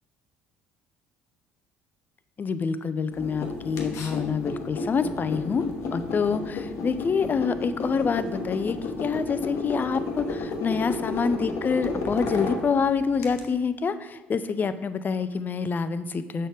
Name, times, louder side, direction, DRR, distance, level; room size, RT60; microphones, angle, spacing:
voice 1, 2.4-5.7 5.9-16.5, left 5 dB, 30° left, 12 dB, 0.4 m, -27 dB
sound 1, 3.1-13.4, left 3 dB, 50° left, 0.9 m, -32 dB
6.5 x 6.2 x 3.4 m, 1.2 s
figure-of-eight pair, 55°, 6 cm